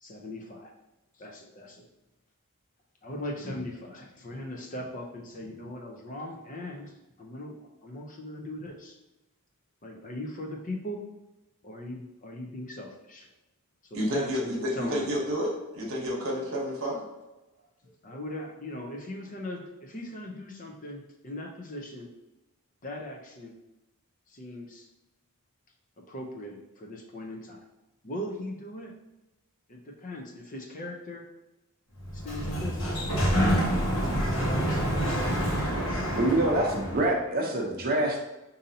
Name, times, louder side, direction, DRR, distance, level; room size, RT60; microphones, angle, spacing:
voice 1, 0.0-0.7 1.2-1.9 3.0-9.0 9.8-11.0 11.6-13.3 13.9-15.2 18.0-22.1 22.8-23.5 24.3-24.9 26.1-27.7 28.0-28.9 29.7-31.2 32.1-33.1 33.8-35.2, left 1 dB, 35° left, 1 dB, 0.6 m, -39 dB
voice 2, 13.9-17.0 18.1-18.2, equal, 65° right, -1 dB, 1.0 m, -30 dB
Sliding door, 32.0-37.1, equal, 65° left, 1.1 m, -27 dB
voice 3, 35.5-35.9 36.2-38.2, right 1 dB, 40° right, 0 dB, 0.7 m, -26 dB
5.2 x 2.7 x 2.7 m, 1.0 s
head